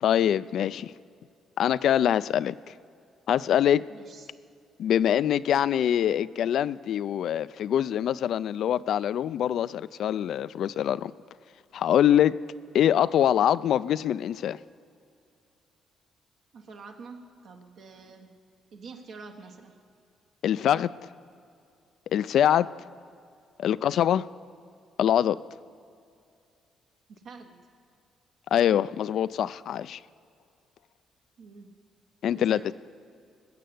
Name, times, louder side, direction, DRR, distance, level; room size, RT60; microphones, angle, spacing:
voice 1, 0.0-0.9 1.6-2.7 3.3-3.9 4.8-11.1 11.7-12.4 12.7-14.6 20.4-20.9 22.1-22.8 23.6-24.3 25.0-25.4 28.5-30.0 32.2-32.7, left 10 dB, 70° left, 17 dB, 0.3 m, -24 dB
voice 2, 3.9-4.3 16.5-18.3 18.7-19.8 27.1-27.6 31.4-31.7 32.3-32.7, right 4 dB, 75° right, 2 dB, 1.2 m, -46 dB
20.0 x 6.7 x 7.8 m, 2.4 s
cardioid pair, 90°, 0 cm